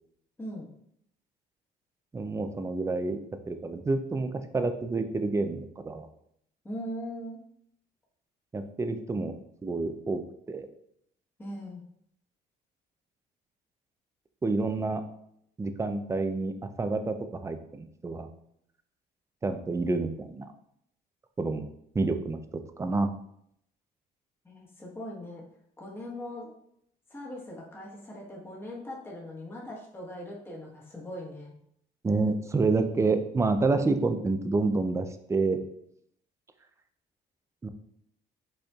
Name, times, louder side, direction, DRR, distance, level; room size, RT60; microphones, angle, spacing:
voice 1, 0.4-0.7 6.6-7.4 11.4-11.8 24.4-25.4 25.8-26.5 27.1-31.5, left 1 dB, 15° left, -3 dB, 1.2 m, -40 dB
voice 2, 2.1-3.2 3.5-6.1 8.5-9.3 9.6-10.2 10.5-10.7 14.4-15.0 15.6-17.2 17.4-18.3 19.4-20.5 21.4-21.7 21.9-22.4 22.8-23.1 32.0-35.6 37.6-37.7, right 3 dB, 15° right, 8 dB, 0.5 m, -28 dB
5.3 x 4.2 x 2.4 m, 0.72 s
cardioid pair, 110°, 17 cm